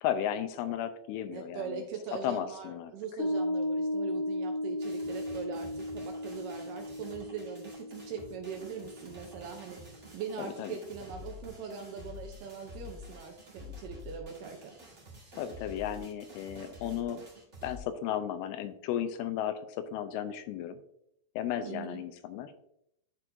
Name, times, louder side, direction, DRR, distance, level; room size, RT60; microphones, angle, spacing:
voice 1, 0.0-1.8 2.1-2.9 10.4-10.8 15.3-17.2 17.6-20.8 21.4-22.5, left 10 dB, 85° left, 9 dB, 2.5 m, -34 dB
voice 2, 1.3-14.7 21.6-22.0, right 6 dB, 75° right, 3 dB, 2.0 m, -41 dB
Piano, 3.2-9.9, left 1 dB, 55° left, 2.3 m, -35 dB
sound 1, 4.8-17.8, left 2 dB, 40° right, 1.0 m, -49 dB
12.5 x 4.5 x 2.6 m, 0.75 s
omnidirectional pair, 4.5 m